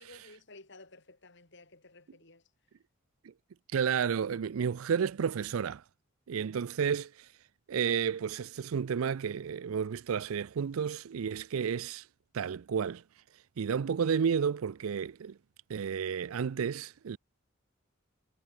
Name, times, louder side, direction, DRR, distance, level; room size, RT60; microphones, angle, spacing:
voice 1, 0.0-2.4 6.6-6.7, left 2 dB, 55° left, 4.8 m, -54 dB
voice 2, 3.7-5.8 6.3-7.3 7.7-12.1 12.3-13.0 13.6-15.4 15.7-17.2, right 7 dB, 80° right, 0.4 m, -31 dB
head